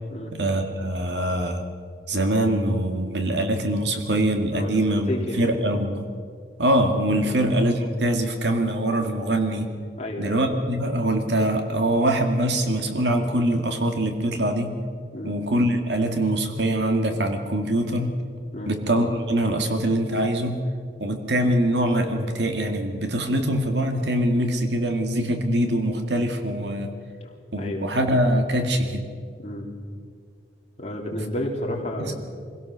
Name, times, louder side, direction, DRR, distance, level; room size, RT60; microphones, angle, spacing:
voice 1, 0.4-1.6 2.1-6.0 6.6-9.7 10.2-14.7 15.2-18.1 18.7-20.6 21.0-26.9 27.5-29.0 32.0-32.1, right 1 dB, 70° right, 5 dB, 2.1 m, -23 dB
voice 2, 4.5-5.5 7.2-7.3 10.0-10.4 15.1-15.4 18.5-18.7 27.6-27.9 29.4-29.7 30.8-32.1, left 1 dB, 35° left, 0 dB, 3.1 m, -31 dB
24.0 x 17.0 x 6.3 m, 2.1 s
head